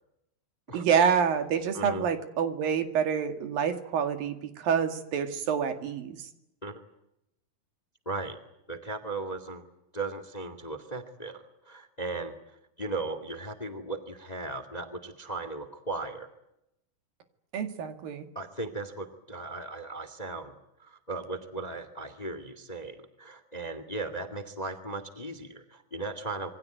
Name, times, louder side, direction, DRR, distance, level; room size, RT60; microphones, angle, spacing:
voice 1, 0.7-6.3 17.5-18.3, right 7 dB, 80° right, 8 dB, 3.9 m, -27 dB
voice 2, 1.7-2.1 6.6-6.8 8.0-8.4 8.7-9.6 9.9-12.3 12.8-16.3 18.3-20.5 20.8-26.5, right 3 dB, 15° left, 12 dB, 1.5 m, -37 dB
27.0 x 23.0 x 9.3 m, 0.85 s
omnidirectional pair, 4.0 m